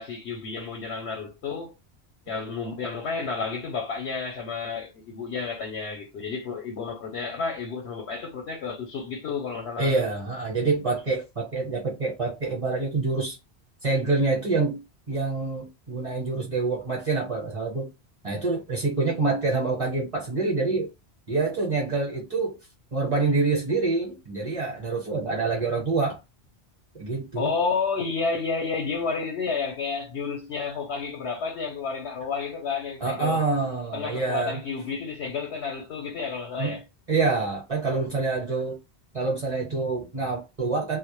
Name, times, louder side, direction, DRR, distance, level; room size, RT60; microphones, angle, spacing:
voice 1, 0.0-1.7 2.3-10.0 27.4-33.4 33.9-36.8, left 5 dB, 80° left, 0.9 m, -31 dB
voice 2, 9.8-13.4 13.8-17.9 18.2-20.9 21.3-22.6 22.9-26.2 26.9-27.5 33.0-34.6 36.6-36.8 37.1-38.8 39.1-41.0, right 3 dB, 35° right, 0.8 m, -26 dB
2.1 x 2.0 x 2.9 m
omnidirectional pair, 1.1 m